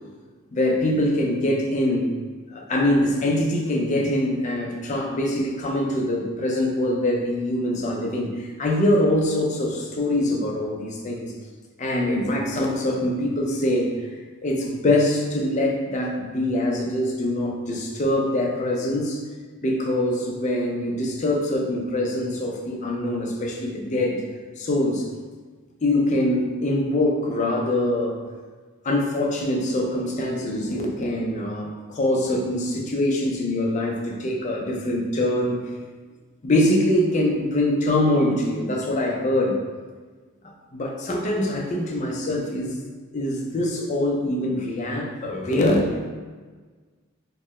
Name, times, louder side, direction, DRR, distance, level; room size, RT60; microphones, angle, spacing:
voice 1, 0.5-2.1 2.5-11.3 11.8-13.9 14.4-19.2 19.6-24.2 24.6-25.1 25.8-28.2 28.8-35.6 36.4-39.6 40.4-42.9 43.1-46.1, left 1 dB, 35° left, 0 dB, 0.5 m, -23 dB
4.3 x 2.1 x 3.0 m, 1.4 s
head